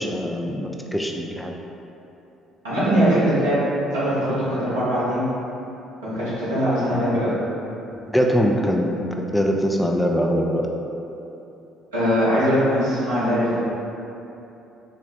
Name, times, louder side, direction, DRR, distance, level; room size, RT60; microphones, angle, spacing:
voice 1, 0.0-1.5 7.1-7.2 7.9-9.0 9.3-10.7, equal, 10° left, 1 dB, 0.3 m, -22 dB
voice 2, 2.6-3.6 3.9-5.2 6.0-7.3 11.9-13.6, equal, 75° right, -12 dB, 1.2 m, -21 dB
3.7 x 2.4 x 3.4 m, 2.9 s
figure-of-eight pair, 50°, 0 cm